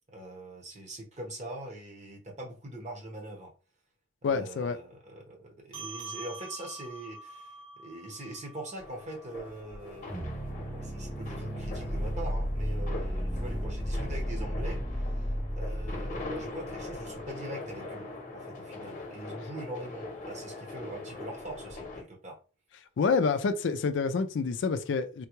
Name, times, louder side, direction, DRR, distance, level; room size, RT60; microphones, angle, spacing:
voice 1, 0.1-3.5 4.2-22.4, right 1 dB, 35° right, 0.9 m, -43 dB
voice 2, 4.2-4.8 23.0-25.3, left 5 dB, 65° left, 0.4 m, -27 dB
sound 1, 5.7-10.5, right 2 dB, 75° right, 1.4 m, -46 dB
sound 2, 8.8-22.0, left 2 dB, 40° left, 0.9 m, -41 dB
sound 3, 10.1-17.2, equal, 10° right, 0.5 m, -34 dB
3.7 x 2.2 x 3.0 m
head